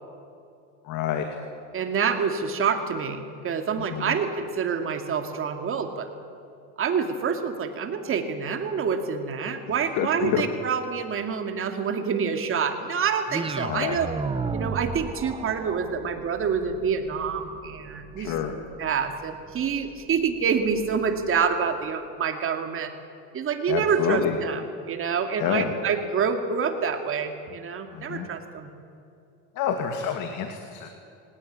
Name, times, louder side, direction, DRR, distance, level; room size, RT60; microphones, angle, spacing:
voice 1, 0.8-1.3 3.9-4.1 10.0-10.4 13.6-14.0 18.2-18.5 23.7-24.4 25.4-25.7 27.9-28.3 29.6-30.9, left 9 dB, 60° left, 5 dB, 2.5 m, -27 dB
voice 2, 1.7-6.1 6.8-14.1 14.5-18.3 18.8-22.9 23.3-28.7, right 6 dB, 35° right, 6 dB, 2.3 m, -27 dB
sound 1, 13.3-21.5, right 5 dB, 15° right, 0.9 m, -36 dB
25.5 x 18.5 x 9.9 m, 2.5 s
supercardioid pair, 125°, 35 cm